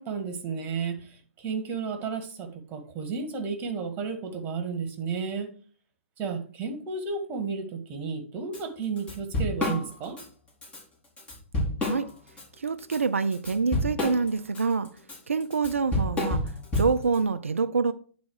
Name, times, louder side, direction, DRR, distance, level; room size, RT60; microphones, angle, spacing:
voice 1, 0.0-5.5 6.2-10.2, right 5 dB, 25° right, 1.9 m, -33 dB
Drum kit / Drum, 8.5-8.6 9.0-10.3 10.6-10.8 11.2-12.4 12.8-17.2, left 1 dB, 15° left, 3.6 m, -29 dB
voice 2, 12.6-14.9 15.3-16.4 16.8-17.9, right 4 dB, 90° right, 0.5 m, -26 dB
9.7 x 4.1 x 4.8 m
hypercardioid pair, 125°, 7 cm